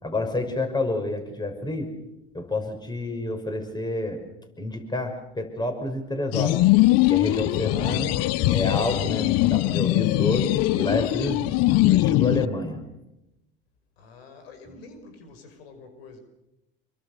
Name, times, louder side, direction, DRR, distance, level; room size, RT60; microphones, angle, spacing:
voice 1, 0.0-1.9 2.3-4.2 4.6-6.6 7.1-8.1 8.5-12.8, left 2 dB, 15° left, 6 dB, 5.9 m, -29 dB
sound 1, 6.3-12.4, left 18 dB, 55° left, 0.8 m, -21 dB
voice 2, 14.0-16.2, left 4 dB, 80° left, 8 dB, 5.5 m, -47 dB
27.5 x 23.5 x 6.8 m, 0.91 s
hypercardioid pair, 85°, 30 cm